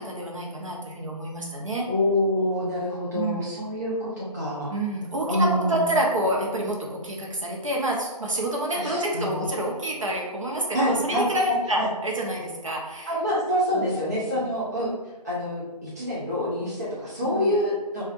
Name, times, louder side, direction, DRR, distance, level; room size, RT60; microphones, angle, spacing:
voice 1, 0.0-1.9 3.1-3.5 4.7-13.1 13.7-13.9 14.3-14.4 17.2-17.6, right 1 dB, 50° right, -1 dB, 1.0 m, -28 dB
voice 2, 1.9-4.7 5.3-5.8 8.7-9.5 10.7-11.3 11.7-11.9 13.1-14.9 15.2-18.0, left 1 dB, 25° right, -8 dB, 0.5 m, -26 dB
6.1 x 2.5 x 2.6 m, 1.2 s
figure-of-eight pair, 170°, 21 cm